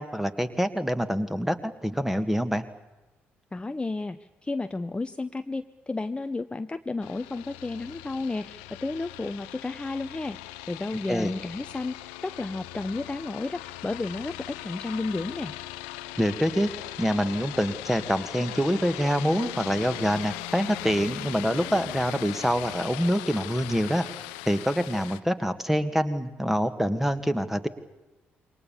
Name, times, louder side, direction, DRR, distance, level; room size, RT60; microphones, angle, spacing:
voice 1, 0.0-2.6 11.1-11.3 16.2-16.7 17.0-24.1 24.5-27.7, equal, 5° right, 11 dB, 1.9 m, -26 dB
voice 2, 3.5-10.4 10.7-15.5, left 3 dB, 15° left, 10 dB, 0.8 m, -32 dB
sound 1, 7.0-25.2, left 17 dB, 70° left, 0.9 m, -39 dB
27.5 x 23.5 x 7.2 m, 1.1 s
figure-of-eight pair, 45°, 6 cm